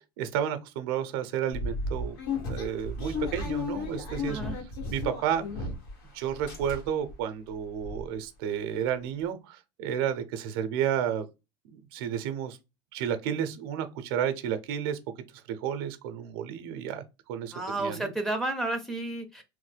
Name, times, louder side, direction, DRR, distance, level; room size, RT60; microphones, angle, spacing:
voice 1, 0.0-4.4 4.9-5.7 6.1-11.3 11.7-12.6 12.9-15.0 15.5-18.1, right 9 dB, 75° right, 0.6 m, -32 dB
sound 1, 1.5-6.0 6.3-7.1 7.5-7.6 7.8-8.0, left 3 dB, 90° left, 1.4 m, -34 dB
voice 2, 4.2-4.6 17.5-19.4, right 2 dB, 5° left, 0.6 m, -32 dB
3.1 x 2.1 x 3.2 m
supercardioid pair, 135°, 12 cm